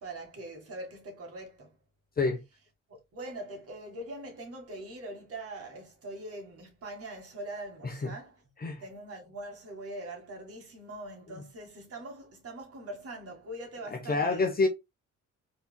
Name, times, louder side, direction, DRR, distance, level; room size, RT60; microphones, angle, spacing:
voice 1, 0.0-1.7 2.9-8.4 8.8-14.4, right 1 dB, 50° right, 1.8 m, -42 dB
voice 2, 13.9-14.7, left 3 dB, 30° left, 1.0 m, -27 dB
4.4 x 3.2 x 2.2 m
cardioid pair, 90°, 30 cm